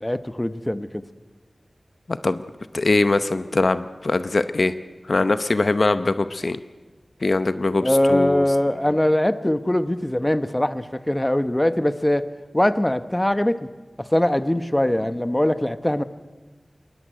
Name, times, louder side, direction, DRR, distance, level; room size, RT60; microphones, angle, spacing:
voice 1, 0.0-1.0 7.8-12.2 12.5-13.6 14.0-16.0, left 1 dB, 20° left, 12 dB, 1.0 m, -21 dB
voice 2, 2.1-2.4 2.7-4.7 5.1-6.6 7.2-8.5, left 3 dB, 65° left, 12 dB, 0.7 m, -22 dB
21.0 x 20.5 x 9.3 m, 1.3 s
wide cardioid pair, 65°, 0 cm